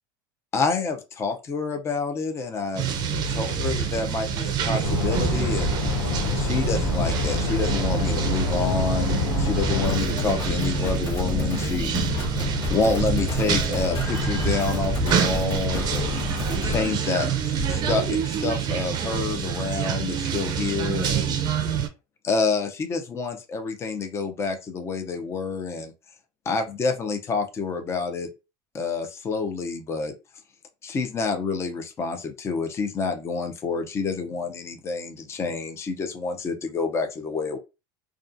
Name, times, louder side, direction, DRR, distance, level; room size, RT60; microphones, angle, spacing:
voice 1, 0.5-2.9 3.3-5.8 6.3-12.0 12.7-16.1 16.6-17.3 17.7-21.4 22.2-25.9 26.5-28.3 28.7-30.1 30.8-37.6, left 4 dB, 25° left, 5 dB, 0.6 m, -28 dB
sound 1, 2.7-21.9, right 8 dB, 40° right, 0.5 m, -27 dB
sound 2, 4.8-10.0, left 3 dB, 70° left, 0.6 m, -26 dB
sound 3, 9.8-16.9, left 4 dB, 40° left, 1.2 m, -29 dB
2.3 x 2.3 x 2.5 m, 0.27 s
supercardioid pair, 120°, 11 cm